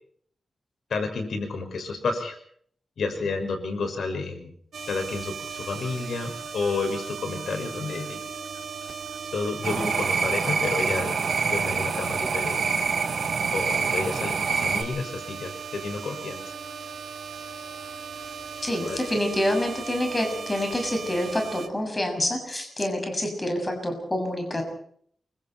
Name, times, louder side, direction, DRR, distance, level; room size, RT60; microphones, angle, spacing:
voice 1, 0.9-2.4 3.0-4.5 4.9-8.3 9.3-12.8 13.5-16.6 18.8-19.0, left 4 dB, 80° left, 6 dB, 6.0 m, -31 dB
sound 1, 4.7-21.7, right 6 dB, 85° right, 3.1 m, -38 dB
sound 2, 9.6-14.8, right 5 dB, 65° right, 4.9 m, -26 dB
voice 2, 18.6-24.6, left 1 dB, 20° left, 4 dB, 6.7 m, -27 dB
28.5 x 25.0 x 4.5 m, 0.62 s
wide cardioid pair, 155°, 0 cm